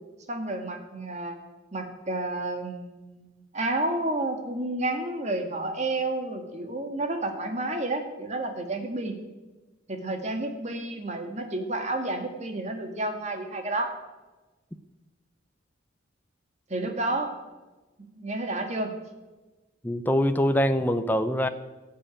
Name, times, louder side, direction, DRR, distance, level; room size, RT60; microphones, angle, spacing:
voice 1, 0.3-1.4 1.7-9.2 9.9-13.9 16.7-17.3 18.0-18.9, right 2 dB, 35° right, 4 dB, 2.0 m, -30 dB
voice 2, 19.8-21.5, equal, 10° left, 9 dB, 0.7 m, -24 dB
17.0 x 6.9 x 9.0 m, 1.2 s
head